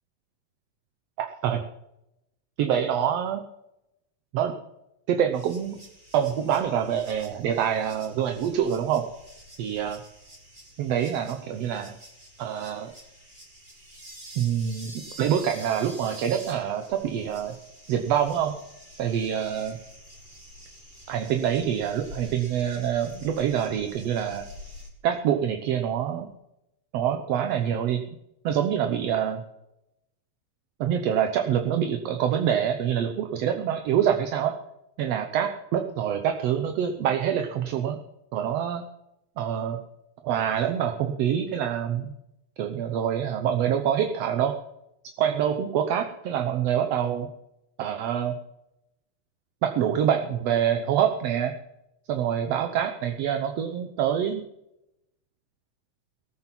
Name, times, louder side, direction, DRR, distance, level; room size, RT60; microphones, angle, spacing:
voice 1, 1.2-1.6 2.6-3.4 4.3-4.5 5.1-5.8 6.1-9.1 9.6-10.0 10.8-12.0 12.4-12.9 14.4-14.9 15.2-17.6 17.9-18.6 19.0-19.8 21.1-24.5 25.0-26.3 26.9-28.0 28.4-29.4 30.8-34.5 35.0-38.0 38.3-38.8 39.4-39.8 40.2-42.1 42.6-44.5 45.2-47.3 47.8-48.4 49.6-51.6 52.1-54.4, right 9 dB, 65° right, 6 dB, 1.8 m, -26 dB
sound 1, 5.3-24.9, equal, 15° right, 2.4 m, -47 dB
18.5 x 9.0 x 5.8 m, 0.87 s
omnidirectional pair, 3.5 m